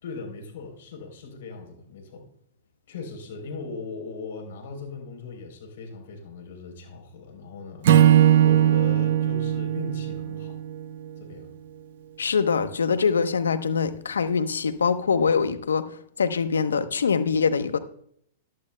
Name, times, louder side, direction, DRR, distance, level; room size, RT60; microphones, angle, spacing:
voice 1, 0.0-2.3 2.9-10.6 11.2-11.5, left 4 dB, 70° left, 3 dB, 3.6 m, -39 dB
Acoustic guitar / Strum, 7.8-11.2, right 11 dB, 65° right, 0.6 m, -19 dB
voice 2, 12.2-15.9 16.2-17.8, left 5 dB, 85° left, 11 dB, 0.9 m, -23 dB
14.5 x 11.5 x 2.2 m, 0.67 s
hypercardioid pair, 115°, 0 cm